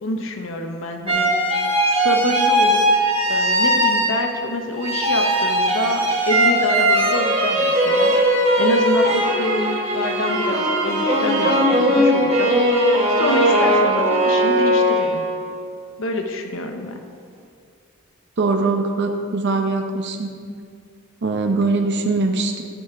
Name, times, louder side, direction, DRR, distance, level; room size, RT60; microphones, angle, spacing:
voice 1, 0.0-1.3 1.8-2.8 3.3-8.1 8.6-15.2 16.0-17.0, left 1 dB, 65° left, 4 dB, 0.7 m, -26 dB
sound 1, 1.1-4.5 4.8-15.4, right 1 dB, 30° right, 1.7 m, -19 dB
voice 2, 18.4-20.3 21.2-22.7, right 3 dB, 55° right, 4 dB, 0.7 m, -21 dB
12.0 x 5.6 x 4.7 m, 2.2 s
head